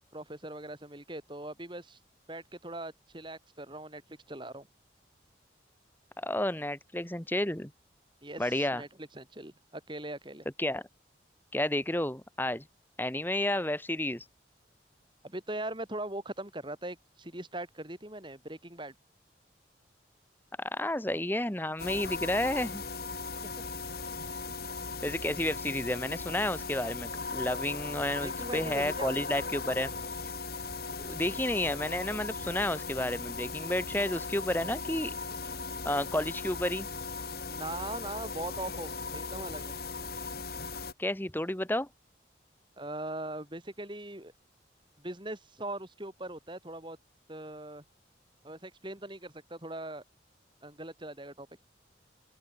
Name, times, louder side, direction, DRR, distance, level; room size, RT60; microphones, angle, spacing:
voice 1, 0.1-2.0 2.3-4.0 4.3-4.7 8.2-8.9 9.1-10.5 15.2-18.9 23.2-23.5 24.5-24.6 28.2-29.3 37.5-39.8 42.8-44.3 45.0-47.0 47.3-47.8 48.4-50.0 50.6-51.5, right 1 dB, 25° right, 3.7 m, -40 dB
voice 2, 6.2-7.7 8.4-8.8 10.6-10.8 11.5-12.7 13.0-14.2 20.6-22.8 25.0-29.9 31.0-35.1 35.8-36.9 41.0-41.9, left 1 dB, 10° left, 1.3 m, -31 dB
sound 1, 21.8-40.9, left 4 dB, 55° left, 2.6 m, -38 dB
open air
head